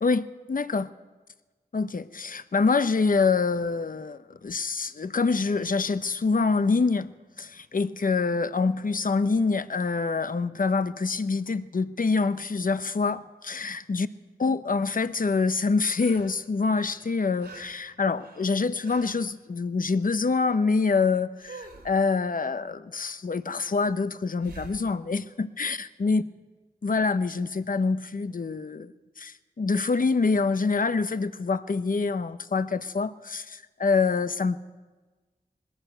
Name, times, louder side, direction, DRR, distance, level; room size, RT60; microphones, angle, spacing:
voice 1, 0.0-0.9 1.7-7.1 7.4-14.1 14.4-26.2 26.8-28.9 29.2-34.6, left 4 dB, 55° left, 12 dB, 0.9 m, -26 dB
sound 1, 15.5-16.5 16.7-19.3 21.4-22.0 24.4-24.9 27.8-27.9, right 3 dB, 85° right, 3.0 m, -47 dB
21.5 x 16.0 x 8.0 m, 1.2 s
wide cardioid pair, 75°, 17 cm